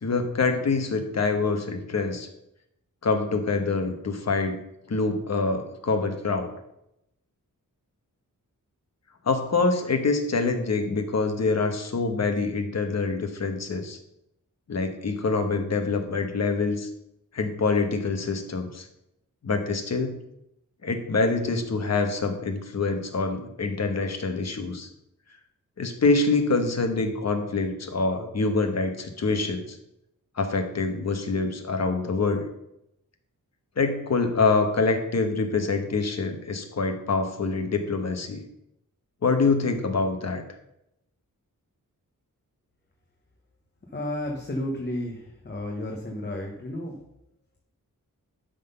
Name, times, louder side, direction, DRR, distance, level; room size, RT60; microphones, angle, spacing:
voice 1, 0.0-2.3 3.0-4.6 4.9-6.5 9.2-14.0 14.7-16.9 17.3-18.9 19.4-20.2 20.8-24.9 25.8-29.8 30.4-32.4 33.8-38.4 39.2-40.4, left 3 dB, 50° left, 6 dB, 1.2 m, -25 dB
voice 2, 43.9-47.0, left 1 dB, 30° left, 0 dB, 1.2 m, -32 dB
11.5 x 4.0 x 5.5 m, 0.82 s
wide cardioid pair, 150°, 33 cm